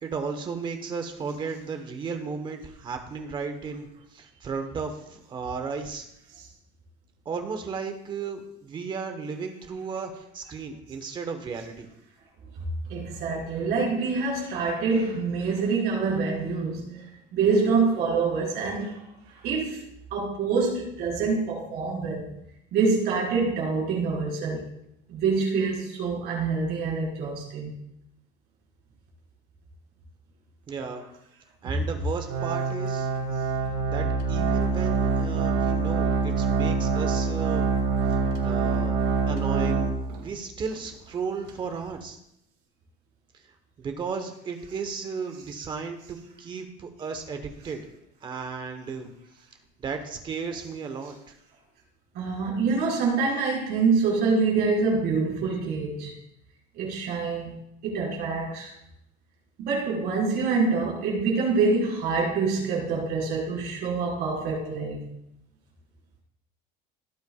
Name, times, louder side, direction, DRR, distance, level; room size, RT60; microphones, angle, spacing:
voice 1, 0.0-3.9 4.1-6.0 7.2-11.9 30.7-31.0 31.6-33.1 33.9-37.7 38.4-38.9 39.3-42.2 43.8-47.8 48.2-49.1 49.8-51.1, right 5 dB, 25° right, 6 dB, 1.0 m, -34 dB
voice 2, 12.9-17.0 17.3-19.0 19.3-19.8 20.1-22.3 22.7-24.7 25.1-27.7 30.9-31.0 31.6-31.8 38.5-38.6 52.1-56.2 56.7-58.7 59.6-65.1, right 4 dB, 50° right, -3 dB, 4.5 m, -26 dB
Organ, 32.3-40.3 40.7-40.8 41.5-41.6, right 4 dB, 85° right, 2.2 m, -25 dB
17.0 x 8.0 x 2.3 m, 0.78 s
cardioid pair, 175°, 21 cm